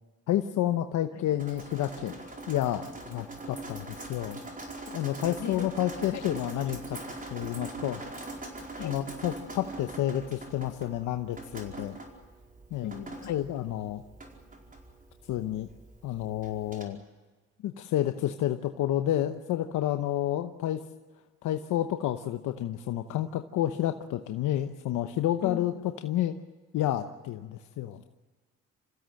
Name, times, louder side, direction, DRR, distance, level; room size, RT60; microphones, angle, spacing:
voice 1, 0.3-4.4 4.9-7.0 7.3-8.0 8.8-12.0 12.7-12.9 13.3-14.0 15.2-15.7 16.0-17.0 17.6-20.8 21.4-25.7 26.0-26.4 26.7-28.0, left 12 dB, 85° left, 7 dB, 1.0 m, -30 dB
Drip, 1.4-16.8, right 2 dB, 25° right, 4.8 m, -43 dB
voice 2, 12.8-13.4 25.4-25.9, left 10 dB, 65° left, 7 dB, 1.9 m, -39 dB
27.0 x 16.0 x 7.7 m, 1.4 s
cardioid pair, 90°, 30 cm